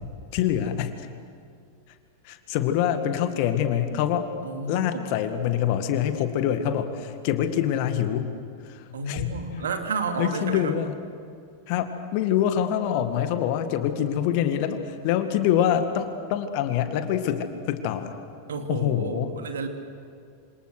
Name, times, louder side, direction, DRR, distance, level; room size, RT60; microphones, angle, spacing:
voice 1, 0.3-1.1 1.9-2.0 2.2-4.3 4.7-8.3 8.6-9.6 10.2-10.9 11.7-18.1 18.7-19.3, left 10 dB, 45° left, 8 dB, 2.0 m, -25 dB
voice 2, 4.4-5.1 8.9-10.8 18.5-19.7, right 4 dB, 65° right, 5 dB, 2.6 m, -31 dB
27.5 x 26.5 x 6.5 m, 2.4 s
figure-of-eight pair, 90°, 0 cm